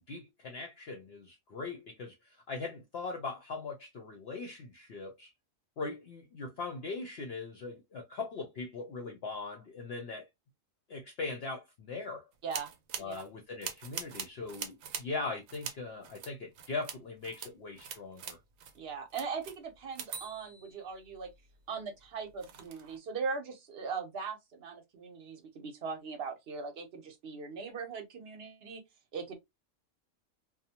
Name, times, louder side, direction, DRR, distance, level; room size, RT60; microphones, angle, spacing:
voice 1, 0.0-5.3 5.8-10.3 10.9-12.3 13.0-18.4, left 3 dB, 60° left, 0.7 m, -40 dB
sound 1, 12.5-13.3 13.6-15.1 15.5-15.8 16.0-17.0 17.2-17.5 17.8-18.8 19.1-21.5 22.0-23.0, right 7 dB, 80° right, 1.0 m, -43 dB
voice 2, 18.7-21.3 21.7-28.8 29.1-29.3, right 5 dB, 55° right, 0.9 m, -40 dB
2.6 x 2.1 x 2.8 m
omnidirectional pair, 1.4 m